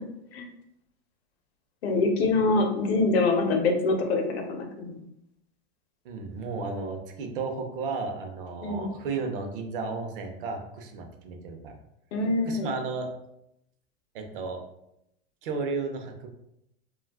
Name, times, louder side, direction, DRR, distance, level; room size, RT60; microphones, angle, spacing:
voice 1, 1.8-5.0 8.6-8.9 12.1-12.7, left 3 dB, 75° left, 3 dB, 0.7 m, -25 dB
voice 2, 6.0-11.7 12.5-13.1 14.1-14.6 15.4-16.3, right 4 dB, 55° right, 4 dB, 0.6 m, -33 dB
2.5 x 2.3 x 3.4 m, 0.81 s
supercardioid pair, 175°, 32 cm